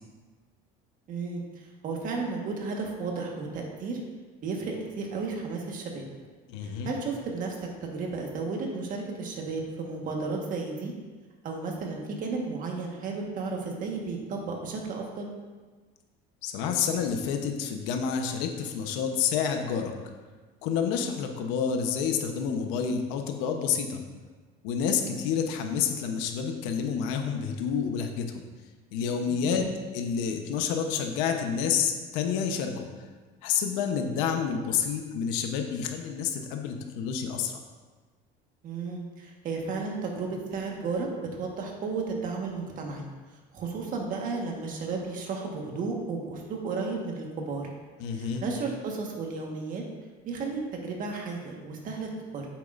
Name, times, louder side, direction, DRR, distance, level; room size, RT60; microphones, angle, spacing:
voice 1, 1.1-4.0 4.4-6.0 6.6-10.9 11.4-15.3 29.3-29.7 38.6-47.7 48.1-49.9 50.2-52.5, right 4 dB, 45° right, 0 dB, 1.5 m, -33 dB
voice 2, 6.5-6.9 16.4-19.9 20.6-24.0 24.6-28.4 28.9-32.9 33.4-37.6 48.0-48.5, left 7 dB, 85° left, 4 dB, 1.0 m, -29 dB
9.1 x 7.5 x 2.6 m, 1.4 s
cardioid pair, 135°, 19 cm